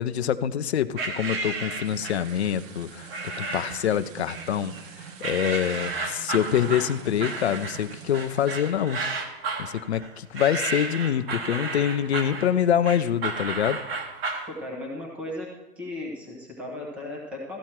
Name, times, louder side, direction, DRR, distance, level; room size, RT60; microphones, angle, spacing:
voice 1, 0.0-9.0 9.6-13.8, left 9 dB, 45° left, 12 dB, 0.5 m, -26 dB
sound 1, 1.0-2.3 3.1-3.9 4.3-4.9 5.2-14.5, right 3 dB, 35° right, 1.4 m, -32 dB
sound 2, 1.8-8.8, right 8 dB, 50° right, 1.2 m, -44 dB
voice 2, 14.5-15.5 15.8-17.6, left 1 dB, 5° right, -2 dB, 0.7 m, -36 dB
13.5 x 9.1 x 4.3 m, 1.0 s
hypercardioid pair, 160°, 49 cm